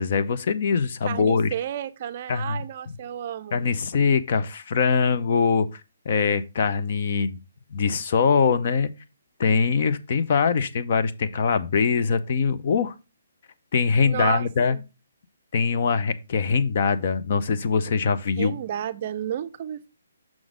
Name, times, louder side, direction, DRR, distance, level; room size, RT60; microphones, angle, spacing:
voice 1, 0.0-1.5 2.3-2.6 3.5-5.8 6.1-7.4 7.7-8.9 9.4-12.9 13.7-14.8 15.5-18.5, left 5 dB, 45° left, 0.7 m, -22 dB
voice 2, 1.1-3.6 14.0-14.8 18.4-19.9, right 10 dB, 35° right, 0.5 m, -31 dB
6.1 x 3.9 x 4.9 m
hypercardioid pair, 165°, 0 cm